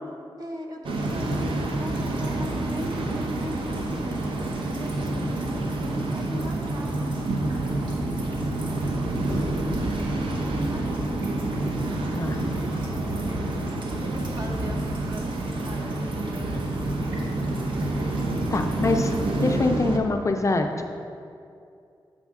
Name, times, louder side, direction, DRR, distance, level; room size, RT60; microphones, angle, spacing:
voice 1, 0.0-3.8 4.7-8.8 9.0-11.2 13.1-13.3 13.5-17.6, right 1 dB, 50° right, 1 dB, 0.9 m, -40 dB
Waves surf, 0.8-20.0, right 2 dB, 90° right, 0.6 m, -28 dB
sound 1, 0.9-19.6, equal, 65° right, 1.3 m, -37 dB
voice 2, 18.5-20.9, left 3 dB, 35° left, 5 dB, 0.4 m, -25 dB
8.1 x 4.9 x 3.6 m, 2.5 s
wide cardioid pair, 110°, 9 cm